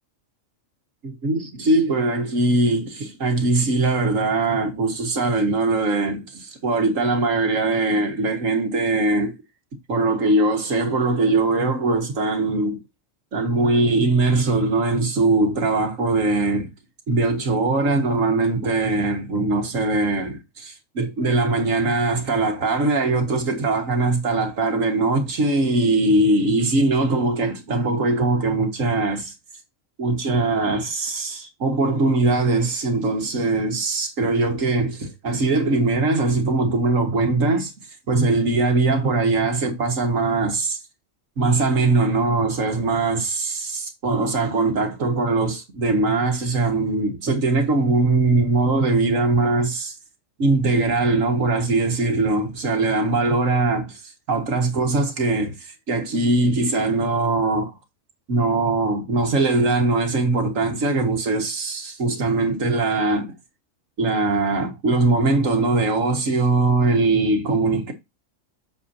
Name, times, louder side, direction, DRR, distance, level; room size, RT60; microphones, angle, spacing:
voice 1, 1.0-9.3 9.9-12.8 13.3-16.7 17.1-29.3 30.0-37.7 38.1-40.8 41.4-49.9 50.4-57.7 58.3-63.3 64.0-67.9, right 3 dB, 80° right, 2.0 m, -21 dB
8.3 x 7.2 x 2.8 m
omnidirectional pair, 1.4 m